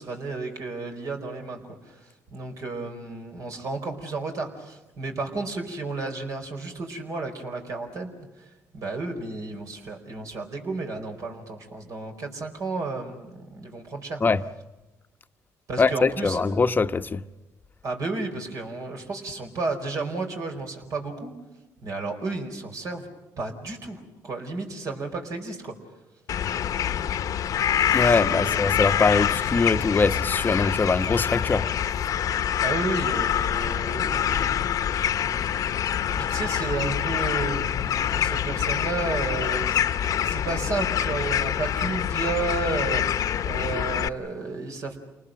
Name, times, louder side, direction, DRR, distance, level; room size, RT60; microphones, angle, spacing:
voice 1, 0.0-1.6 1.9-2.0 2.3-8.1 8.7-14.2 15.7-16.4 17.8-21.3 21.8-23.1 23.4-25.7 28.0-28.6 32.6-34.5 36.1-39.8 40.2-45.0, right 3 dB, 60° right, 4.8 m, -32 dB
voice 2, 15.8-17.2 27.9-31.6, left 4 dB, 30° left, 1.0 m, -22 dB
sound 1, 26.3-44.1, left 9 dB, 60° left, 1.0 m, -26 dB
28.5 x 19.5 x 7.7 m
cardioid pair, 90°, 7 cm